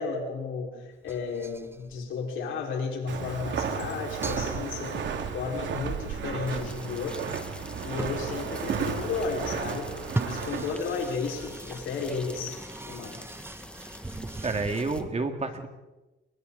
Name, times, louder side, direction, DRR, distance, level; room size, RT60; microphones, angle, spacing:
voice 1, 0.0-5.1 5.3-7.3 7.8-9.9 10.2-13.2, left 5 dB, 80° left, 0 dB, 5.7 m, -33 dB
sound 1, 0.9-2.5 3.0-3.1 3.4-3.7 4.2-5.6 7.6-7.7 8.0-8.3 10.0-15.1, right 2 dB, 10° right, 1.0 m, -39 dB
Walk footsteps, 3.1-10.8, right 6 dB, 70° right, 2.7 m, -33 dB
sound 2, 6.5-15.0, left 1 dB, 5° left, 2.0 m, -45 dB
voice 2, 14.4-15.7, right 3 dB, 35° right, 6 dB, 2.6 m, -29 dB
28.5 x 24.0 x 4.3 m, 1.1 s
cardioid pair, 90°, 20 cm